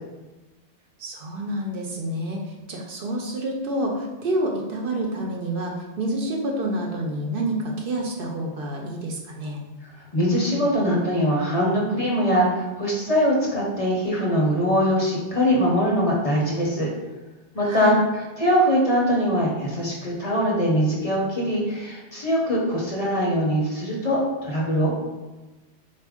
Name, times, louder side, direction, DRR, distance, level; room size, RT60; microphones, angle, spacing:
voice 1, 1.0-9.6 17.6-18.0, right 1 dB, 60° right, 0 dB, 0.7 m, -28 dB
voice 2, 10.1-16.9 17.5-17.9 18.4-24.9, equal, 40° left, -3 dB, 0.7 m, -22 dB
4.0 x 2.5 x 3.5 m, 1.1 s
omnidirectional pair, 1.1 m